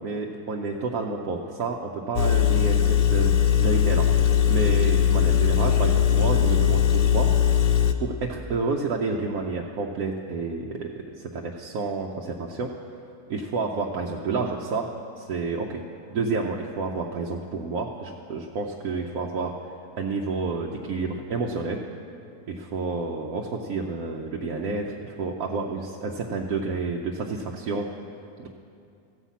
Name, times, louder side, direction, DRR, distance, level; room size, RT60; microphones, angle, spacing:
voice 1, 0.0-4.1 4.5-7.5 8.0-12.7 13.3-14.9 15.2-15.8 16.1-19.5 20.0-21.8 22.5-27.9 28.4-28.5, right 4 dB, 70° right, 0 dB, 1.1 m, -29 dB
Engine, 2.2-7.9, left 9 dB, 65° left, 0.6 m, -20 dB
14.5 x 5.7 x 8.3 m, 2.5 s
omnidirectional pair, 1.6 m